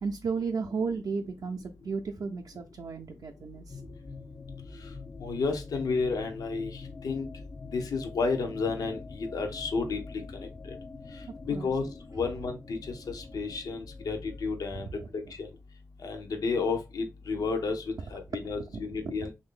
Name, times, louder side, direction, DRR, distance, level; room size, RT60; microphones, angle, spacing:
voice 1, 0.0-3.8 11.5-11.7 14.7-15.1, right 5 dB, 70° right, 3 dB, 0.4 m, -34 dB
sound 1, 3.7-14.5, left 4 dB, 20° left, 0.4 m, -45 dB
voice 2, 5.2-7.3 7.7-10.2 11.5-11.8 12.1-12.8 13.1-14.9 15.1-15.5 16.0-19.3, left 4 dB, 85° left, 5 dB, 0.6 m, -31 dB
3.3 x 2.6 x 3.5 m, 0.26 s
cardioid pair, 70°, 6 cm